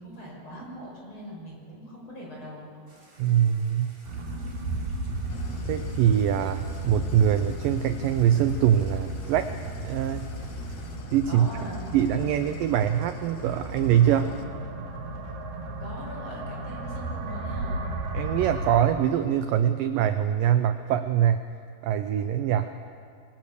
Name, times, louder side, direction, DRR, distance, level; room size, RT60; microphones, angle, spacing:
voice 1, 0.0-3.2 11.2-12.0 15.8-17.8, equal, 30° left, -2 dB, 6.2 m, -41 dB
sound 1, 2.9-11.0, right 1 dB, 15° right, 3.4 m, -56 dB
voice 2, 3.2-4.0 5.7-9.6 9.8-10.3 11.1-11.5 11.9-14.4 18.1-21.5 21.8-22.8, right 10 dB, 80° right, 10 dB, 2.1 m, -23 dB
sound 2, 4.0-18.9, right 1 dB, 60° right, 4.8 m, -34 dB
Idling, 5.3-14.4, left 6 dB, 65° left, 2.0 m, -49 dB
25.5 x 21.5 x 6.8 m, 2.3 s
omnidirectional pair, 4.6 m